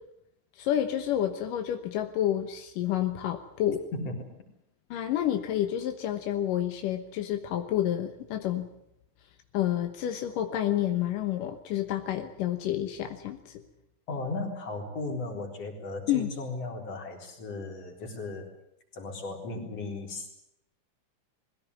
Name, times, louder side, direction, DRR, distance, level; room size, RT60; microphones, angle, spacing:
voice 1, 0.6-3.9 4.9-8.7 9.5-13.6 16.1-16.3, left 11 dB, 85° left, 6 dB, 2.8 m, -29 dB
voice 2, 14.1-18.5 18.9-20.3, left 3 dB, 50° left, 2 dB, 4.9 m, -36 dB
21.5 x 16.5 x 9.6 m, 0.79 s
omnidirectional pair, 3.7 m